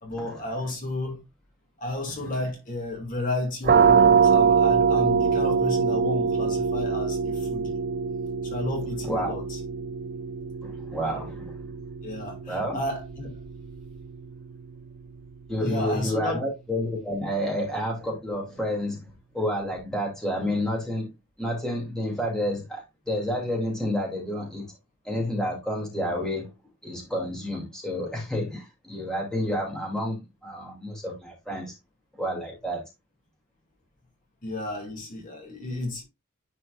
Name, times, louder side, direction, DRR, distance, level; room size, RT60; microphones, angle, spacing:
voice 1, 0.0-1.2 1.8-7.8 8.4-9.6 12.0-13.3 15.6-16.5 34.4-36.0, left 1 dB, 40° left, 2.3 m, -32 dB
sound 1, 3.6-15.2, right 6 dB, 45° right, 0.5 m, -24 dB
voice 2, 9.0-9.4 10.6-11.6 12.4-12.8 15.5-21.1 21.4-24.7 25.0-26.5 26.8-31.7 32.2-32.9, equal, 5° left, 2.5 m, -30 dB
10.5 x 4.5 x 2.4 m
head